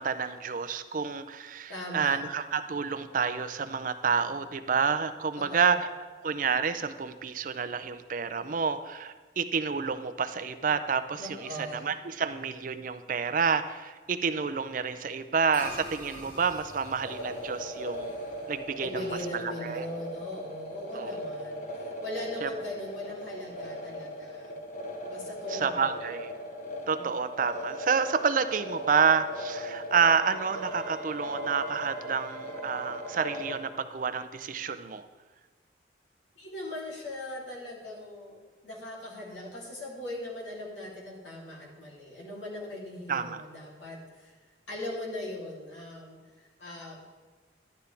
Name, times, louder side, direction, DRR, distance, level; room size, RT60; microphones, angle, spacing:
voice 1, 0.0-5.9 6.2-18.2 18.5-19.0 19.3-19.9 20.9-21.1 22.4-22.5 25.5-26.3 26.9-35.1 43.1-43.4, right 6 dB, 45° right, 11 dB, 0.4 m, -29 dB
voice 2, 1.7-2.2 5.4-5.8 11.2-11.8 18.8-24.5 25.1-26.2 27.0-27.1 36.3-44.3 44.7-47.0, left 1 dB, 85° left, -5 dB, 3.0 m, -40 dB
sound 1, 15.5-20.1, equal, 30° left, 1.6 m, -47 dB
sound 2, 17.0-33.6, left 1 dB, 45° left, 1.1 m, -39 dB
Wind instrument woodwind instrument, 30.1-34.3, right 2 dB, 10° left, 1.3 m, -51 dB
11.5 x 9.6 x 3.4 m, 1.4 s
head